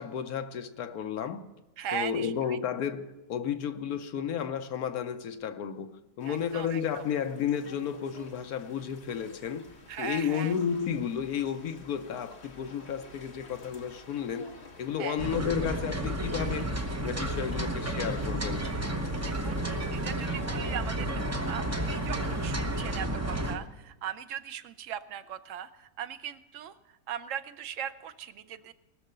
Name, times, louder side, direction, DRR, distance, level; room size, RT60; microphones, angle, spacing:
voice 1, 0.0-1.5 1.9-16.7 17.0-18.7, left 8 dB, 65° left, 1.1 m, -32 dB
voice 2, 1.8-2.6 6.2-7.0 9.9-10.5 15.0-15.2 19.2-19.6 19.9-26.7 27.1-28.7, right 9 dB, 65° right, 0.8 m, -39 dB
sound 1, 6.2-23.1, left 3 dB, 40° left, 1.5 m, -51 dB
sound 2, 15.2-23.6, right 1 dB, 20° right, 0.4 m, -31 dB
19.5 x 6.4 x 6.7 m
omnidirectional pair, 1.8 m